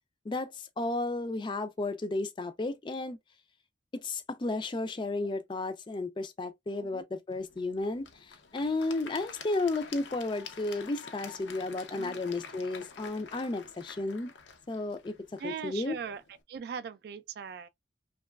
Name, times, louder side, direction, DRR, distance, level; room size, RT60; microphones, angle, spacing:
voice 1, 0.3-3.2 3.9-8.1 8.5-14.3 14.7-15.2 15.4-16.0, left 2 dB, 25° left, 0.3 m, -33 dB
Applause / Crowd, 7.3-16.4, left 5 dB, 80° left, 0.5 m, -48 dB
voice 2, 15.4-17.7, right 6 dB, 60° right, 0.3 m, -40 dB
2.9 x 2.3 x 2.2 m
head